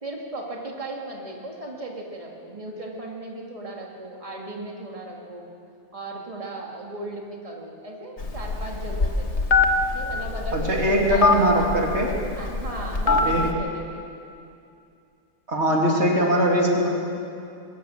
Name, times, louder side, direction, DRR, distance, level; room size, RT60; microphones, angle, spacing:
voice 1, 0.0-5.5 5.9-9.4 9.9-11.3 12.3-14.0 15.6-16.0, right 2 dB, 30° right, -1 dB, 2.5 m, -36 dB
Telephone, 8.2-13.5, left 3 dB, 80° left, 1.6 m, -24 dB
voice 2, 10.5-12.2 13.1-13.6 15.5-16.9, right 1 dB, 80° right, -1 dB, 3.0 m, -21 dB
21.5 x 17.5 x 7.2 m, 2.5 s
omnidirectional pair, 1.1 m